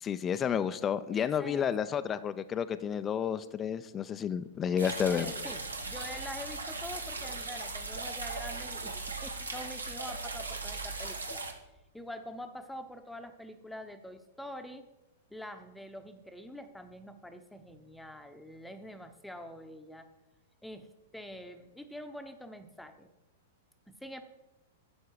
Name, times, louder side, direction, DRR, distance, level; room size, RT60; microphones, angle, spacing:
voice 1, 0.0-5.3, left 8 dB, 25° left, 12 dB, 0.5 m, -31 dB
voice 2, 1.1-2.0 5.1-8.9 9.2-11.4 11.9-14.8 15.3-20.1 20.6-23.1 23.9-24.2, left 1 dB, 5° left, 7 dB, 0.9 m, -45 dB
sound 1, 4.8-11.5, right 3 dB, 90° right, 1.5 m, -38 dB
11.5 x 8.2 x 4.8 m, 1.0 s
figure-of-eight pair, 105°, 0 cm